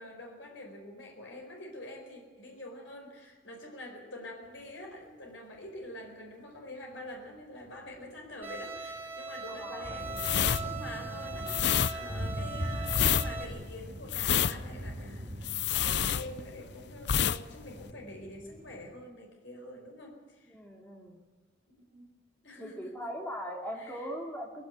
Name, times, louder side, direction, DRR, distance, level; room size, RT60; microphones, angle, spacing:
voice 1, 0.0-20.6 21.7-22.1 22.4-23.1 23.7-24.1, left 1 dB, 80° left, 1 dB, 4.5 m, -46 dB
sound 1, 7.7-7.8 8.0-8.2 8.5-9.0 9.5-18.9, equal, 40° right, 2.4 m, -41 dB
Bowed string instrument, 8.4-13.4, right 4 dB, 10° right, 3.9 m, -40 dB
voice 2, 9.5-9.9 12.5-12.6 20.5-21.2 22.6-24.7, equal, 10° left, 1 dB, 3.2 m, -40 dB
sound 2, 10.1-16.7 17.0-17.4 17.7-17.9, left 9 dB, 60° left, 0.6 m, -28 dB
20.5 x 16.0 x 9.1 m, 1.3 s
head